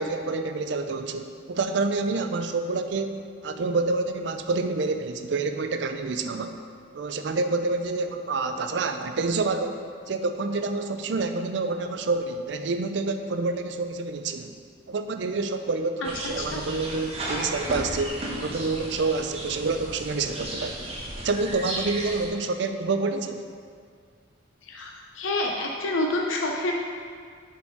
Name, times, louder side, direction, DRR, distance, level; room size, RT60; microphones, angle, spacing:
voice 1, 0.0-6.5 6.9-14.6 14.9-20.8 21.2-23.4, right 3 dB, 60° right, 7 dB, 0.4 m, -28 dB
sound 1, 16.0-22.3, right 1 dB, 30° right, 0.9 m, -34 dB
voice 2, 24.6-26.7, left 2 dB, 80° left, 0 dB, 0.6 m, -28 dB
7.1 x 4.4 x 4.5 m, 2.1 s
head